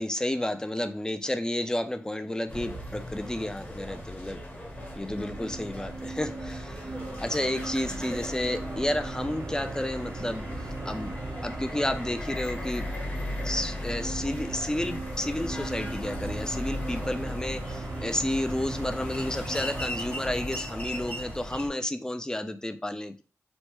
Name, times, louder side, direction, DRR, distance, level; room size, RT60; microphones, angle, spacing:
voice 1, 0.0-4.4 5.0-6.9 7.2-10.5 10.9-11.1 11.4-12.9 13.4-23.2, left 1 dB, 15° left, 0.4 m, -31 dB
sound 1, 2.5-21.7, left 1 dB, 30° left, 1.0 m, -37 dB
sound 2, 4.3-21.3, right 3 dB, 55° right, 0.5 m, -39 dB
3.1 x 2.1 x 3.0 m
cardioid pair, 65°, 5 cm